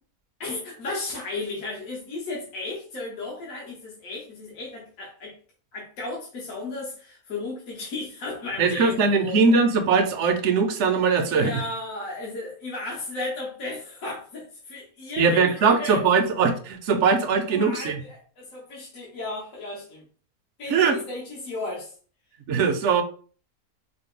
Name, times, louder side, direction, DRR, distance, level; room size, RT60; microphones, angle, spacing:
voice 1, 0.4-5.3 5.7-9.4 11.3-16.0 17.5-20.0 20.6-21.9, left 2 dB, 70° left, -4 dB, 1.6 m, -34 dB
voice 2, 8.6-11.6 15.2-18.0 20.7-21.0 22.5-23.0, right 5 dB, 60° right, 7 dB, 0.9 m, -21 dB
5.0 x 2.1 x 3.7 m, 0.41 s
omnidirectional pair, 1.5 m